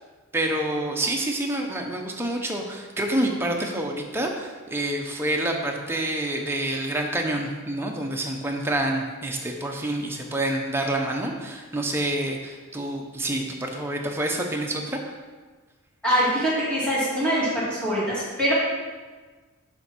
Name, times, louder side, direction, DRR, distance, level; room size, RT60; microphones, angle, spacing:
voice 1, 0.3-15.0, right 1 dB, 10° right, 1 dB, 0.6 m, -27 dB
voice 2, 16.0-18.5, equal, 5° left, -9 dB, 2.2 m, -23 dB
6.8 x 3.5 x 6.0 m, 1.4 s
head